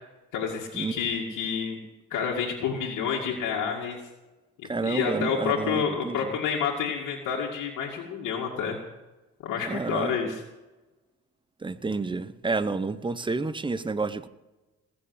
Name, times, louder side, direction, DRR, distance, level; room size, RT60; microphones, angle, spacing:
voice 1, 0.3-1.8 2.1-4.0 4.6-8.8 9.4-10.4, left 6 dB, 90° left, 2.2 m, -29 dB
voice 2, 4.6-6.3 9.7-10.1 11.6-14.3, right 3 dB, 15° right, 0.9 m, -30 dB
19.5 x 7.2 x 8.0 m
cardioid pair, 90°, 30 cm